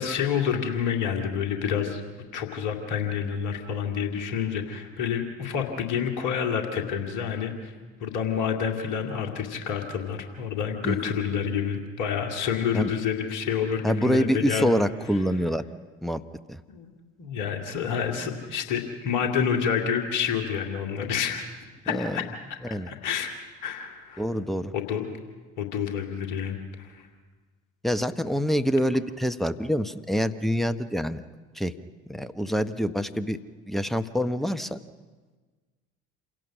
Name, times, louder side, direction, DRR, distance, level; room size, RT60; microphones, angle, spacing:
voice 1, 0.0-2.0 2.3-7.7 8.0-14.8 16.7-16.9 17.2-21.4 21.8-22.3 22.9-23.3 23.6-24.2 24.7-25.1 25.6-27.1, left 7 dB, 60° left, 3 dB, 2.7 m, -28 dB
voice 2, 13.8-15.6 16.0-16.2 16.5-16.6 21.9-22.2 22.6-22.9 24.2-24.7 27.8-31.2 31.5-31.7 32.1-33.4 33.7-34.8, equal, ahead, 11 dB, 1.0 m, -26 dB
27.0 x 17.0 x 6.2 m, 1.4 s
figure-of-eight pair, 55°, 35 cm